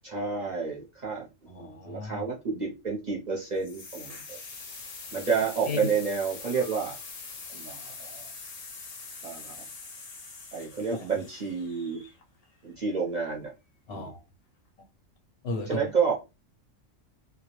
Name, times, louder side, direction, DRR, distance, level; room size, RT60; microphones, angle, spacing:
voice 1, 0.0-4.4 5.1-7.0 7.5-8.3 9.2-9.5 10.5-12.0 12.6-13.5 13.9-14.1 15.7-16.1, right 5 dB, 45° right, 0.6 m, -30 dB
voice 2, 1.5-2.3 5.7-5.9 13.9-14.2 15.4-15.8, left 3 dB, 65° left, 0.7 m, -34 dB
sound 1, 3.6-12.4, left 4 dB, 85° left, 0.3 m, -43 dB
2.3 x 2.0 x 2.9 m
omnidirectional pair, 1.4 m